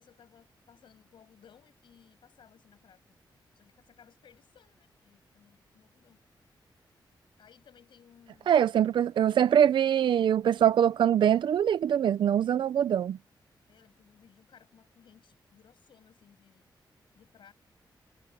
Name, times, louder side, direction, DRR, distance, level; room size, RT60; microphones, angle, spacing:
voice 1, 0.0-3.2 3.5-6.2 7.4-8.5 13.7-16.7 17.2-17.5, left 8 dB, 80° left, 7.1 m, -60 dB
voice 2, 8.5-13.2, right 9 dB, 75° right, 0.5 m, -23 dB
wide cardioid pair, 150°, 8 cm